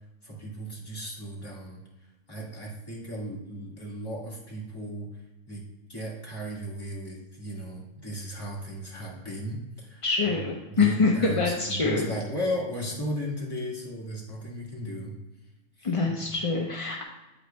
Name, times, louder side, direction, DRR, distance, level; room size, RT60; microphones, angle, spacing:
voice 1, 0.2-1.8 2.3-5.1 5.5-5.6 5.9-10.0 10.7-15.2 15.8-16.0, equal, 20° left, -5 dB, 1.9 m, -35 dB
voice 2, 10.0-12.1 15.8-17.0, left 4 dB, 35° left, 0 dB, 0.5 m, -25 dB
8.7 x 7.9 x 2.2 m, 1.1 s
omnidirectional pair, 1.3 m